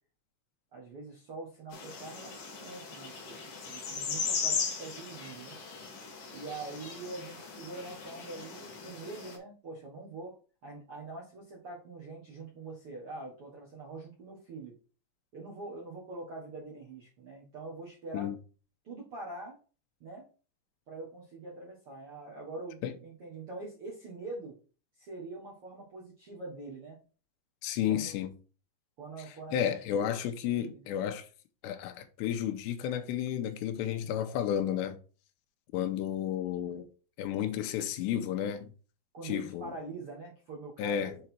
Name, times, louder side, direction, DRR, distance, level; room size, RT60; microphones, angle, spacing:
voice 1, 0.7-3.4 3.7-5.6 6.3-10.3 10.6-14.7 15.3-18.3 18.8-19.6 20.0-20.2 20.9-24.5 25.0-27.0 27.9-28.2 29.0-29.7 30.4-30.9 39.1-41.1, right 3 dB, 70° right, 1.3 m, -44 dB
sound 1, 1.7-9.4, left 5 dB, 60° left, 3.4 m, -38 dB
voice 2, 27.6-28.3 29.5-31.3 31.6-35.0 35.7-36.9 37.2-38.7 39.2-39.7 40.8-41.2, left 10 dB, 85° left, 2.9 m, -32 dB
7.7 x 4.1 x 4.4 m
omnidirectional pair, 5.1 m